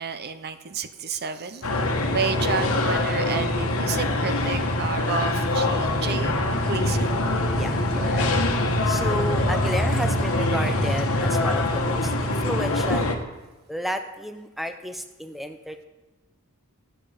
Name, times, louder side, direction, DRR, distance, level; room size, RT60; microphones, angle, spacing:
voice 1, 0.0-6.4 6.7-7.3, right 6 dB, 45° right, 10 dB, 0.7 m, -31 dB
sound 1, 1.6-13.2, left 1 dB, 65° left, 1.3 m, -24 dB
voice 2, 7.4-8.3 8.6-13.2 13.7-15.8, equal, ahead, 7 dB, 0.5 m, -32 dB
14.0 x 7.8 x 5.0 m, 1.1 s
head